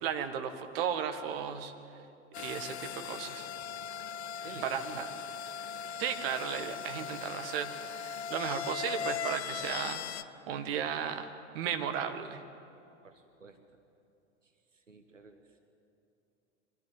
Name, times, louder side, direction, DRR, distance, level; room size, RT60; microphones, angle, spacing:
voice 1, 0.0-1.7 2.4-3.5 4.6-5.1 6.0-11.3 11.5-12.4, right 8 dB, 50° right, 7 dB, 1.8 m, -35 dB
sound 1, 2.3-10.2, left 8 dB, 65° left, 0.8 m, -39 dB
voice 2, 4.4-5.2 13.0-13.6 14.4-15.6, right 4 dB, 85° right, 7 dB, 1.4 m, -51 dB
23.5 x 14.5 x 9.3 m, 2.8 s
figure-of-eight pair, 90°, 37 cm